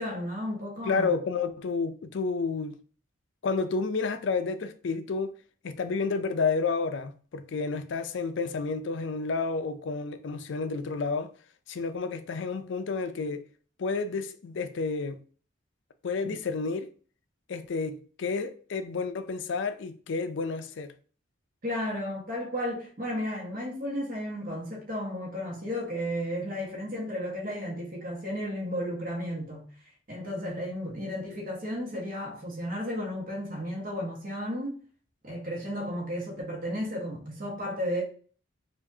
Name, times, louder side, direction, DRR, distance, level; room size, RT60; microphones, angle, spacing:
voice 1, 0.0-1.2 16.2-16.4 21.6-29.7 30.1-34.8 35.2-38.0, equal, 45° right, 1.4 m, -33 dB
voice 2, 0.8-2.8 3.4-5.4 5.6-11.3 11.7-13.4 13.8-15.2 16.0-16.9 17.5-20.9, left 4 dB, 60° left, 0.4 m, -30 dB
4.6 x 2.5 x 2.6 m
head